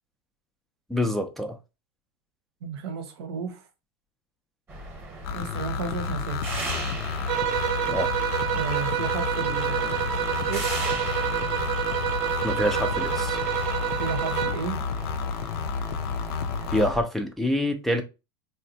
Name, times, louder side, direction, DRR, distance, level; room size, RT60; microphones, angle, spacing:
voice 1, 0.9-1.6 7.9-8.1 12.4-13.4 16.7-18.0, left 1 dB, ahead, 0.3 m, -26 dB
voice 2, 2.6-3.6 5.3-6.6 8.5-10.7 14.0-14.8, right 6 dB, 85° right, 0.7 m, -33 dB
sound 1, 4.7-17.0, right 2 dB, 15° right, 0.8 m, -39 dB
sound 2, 5.2-16.9, left 6 dB, 70° left, 0.5 m, -31 dB
sound 3, 7.3-14.7, right 10 dB, 50° right, 0.5 m, -28 dB
3.9 x 2.2 x 2.6 m
supercardioid pair, 140°, 13 cm